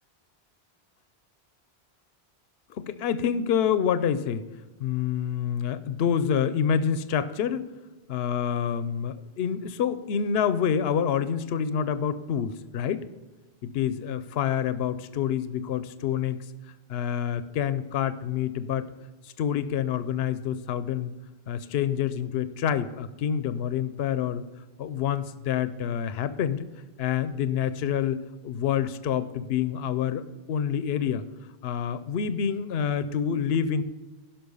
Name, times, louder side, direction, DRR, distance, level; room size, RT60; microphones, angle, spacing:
voice 1, 2.8-4.4 4.8-7.7 8.1-13.1 13.6-16.4 16.9-18.9 19.4-21.1 21.5-24.4 24.8-26.7 27.0-30.2 30.5-31.3 31.6-33.8, left 8 dB, 75° left, 13 dB, 0.8 m, -27 dB
11.5 x 5.8 x 5.4 m, 1.2 s
omnidirectional pair, 1.1 m